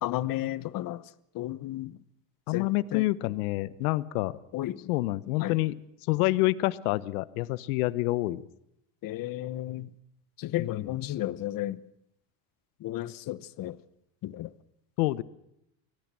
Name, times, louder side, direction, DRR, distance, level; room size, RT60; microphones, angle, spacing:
voice 1, 0.0-1.0 1.3-2.0 2.5-3.0 4.5-4.9 5.4-5.6 9.0-9.9 10.4-11.8 12.8-13.8 14.2-14.5, left 14 dB, 50° left, 1.1 m, -33 dB
voice 2, 2.5-4.3 4.9-5.7 6.1-8.5 10.6-11.0 15.0-15.2, left 19 dB, 80° left, 1.0 m, -27 dB
24.0 x 17.5 x 7.5 m
supercardioid pair, 100°, 44 cm